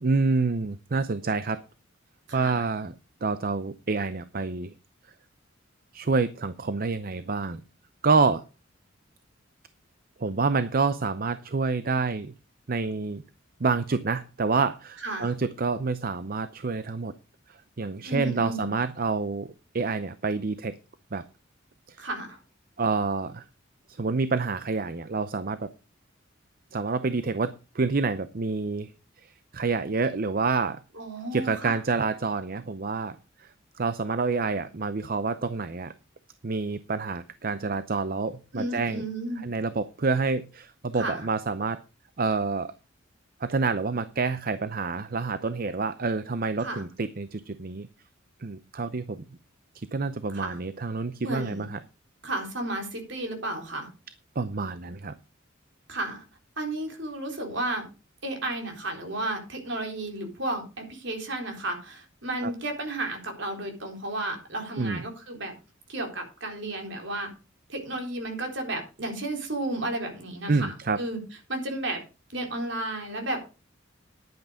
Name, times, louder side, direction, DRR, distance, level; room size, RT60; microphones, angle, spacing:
voice 1, 0.0-1.6 2.3-2.9 3.2-4.7 5.9-7.6 8.0-8.4 10.2-12.3 12.7-13.2 13.6-17.1 17.8-20.8 21.1-21.2 21.9-22.0 22.8-23.4 24.0-25.7 26.7-28.9 29.2-30.8 31.3-33.5 33.7-35.9 36.4-39.0 39.4-41.8 42.2-42.7 43.4-47.9 48.4-49.2 49.7-51.8 54.4-55.2 62.4-62.5 64.8-65.0 70.5-71.0, right 4 dB, 45° right, 13 dB, 0.6 m, -28 dB
voice 2, 2.3-2.6 15.0-15.3 18.0-18.7 22.0-22.4 31.0-31.8 38.5-39.4 41.0-41.3 46.6-46.8 50.3-50.6 51.2-51.6 52.2-53.9 55.9-56.2 56.6-57.9 58.2-65.5 65.9-67.3 67.7-71.2 71.5-72.0 72.3-73.4, right 2 dB, 60° right, 3 dB, 3.9 m, -33 dB
10.5 x 9.2 x 5.0 m, 0.31 s
head